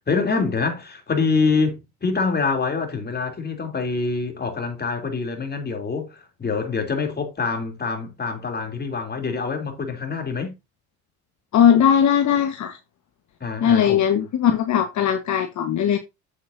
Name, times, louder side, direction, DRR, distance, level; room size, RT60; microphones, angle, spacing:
voice 1, 0.0-10.5 13.4-14.0, left 4 dB, 30° left, 3.2 m, -25 dB
voice 2, 11.5-12.8 13.6-16.0, left 9 dB, 55° left, 1.4 m, -19 dB
8.3 x 8.1 x 2.7 m
supercardioid pair, 85°, 34 cm